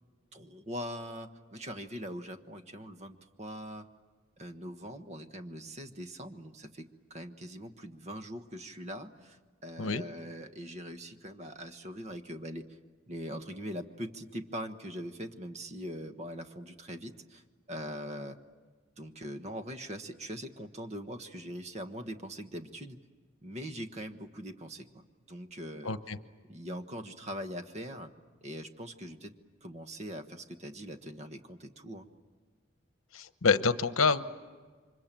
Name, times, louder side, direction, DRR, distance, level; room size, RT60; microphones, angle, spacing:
voice 1, 0.3-3.9 4.4-12.8 13.1-18.4 19.0-23.0 23.4-26.0 26.5-28.1 28.4-29.3 29.6-32.1, equal, 35° right, 8 dB, 1.3 m, -42 dB
voice 2, 25.8-26.2 33.1-34.2, left 4 dB, 75° left, 12 dB, 1.0 m, -27 dB
29.0 x 25.0 x 7.5 m, 1.5 s
head